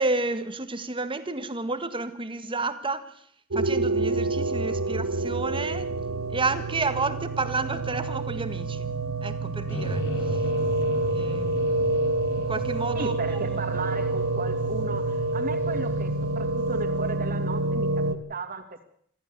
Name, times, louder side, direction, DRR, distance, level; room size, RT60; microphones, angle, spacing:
voice 1, 0.0-3.1 3.5-5.9 6.3-8.9 9.2-10.4 11.1-12.0 12.3-13.6, right 3 dB, 25° right, 10 dB, 1.8 m, -31 dB
sound 1, 3.5-18.1, right 2 dB, 70° right, 1.6 m, -27 dB
sound 2, 9.7-16.8, equal, 55° left, 5.1 m, -37 dB
voice 2, 12.9-18.0 18.3-18.8, right 3 dB, 40° right, 7 dB, 2.6 m, -35 dB
26.0 x 14.5 x 6.9 m, 0.65 s
head